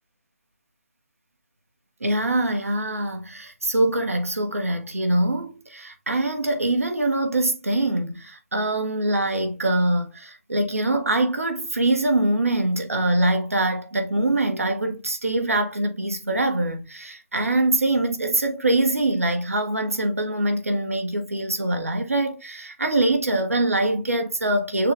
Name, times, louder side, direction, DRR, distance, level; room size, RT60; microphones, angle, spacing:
voice 1, 2.0-24.9, right 1 dB, 85° right, 1.2 m, -23 dB
6.4 x 2.4 x 3.3 m
figure-of-eight pair, 135°, 7 cm